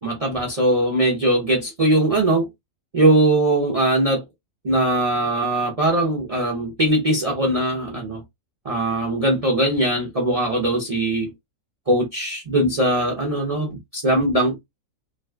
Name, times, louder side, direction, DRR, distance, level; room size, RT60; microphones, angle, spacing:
voice 1, 0.0-2.5 2.9-4.2 4.6-8.2 8.6-11.3 11.9-14.6, right 1 dB, 40° right, 0.5 m, -20 dB
2.5 x 2.3 x 3.2 m
omnidirectional pair, 1.5 m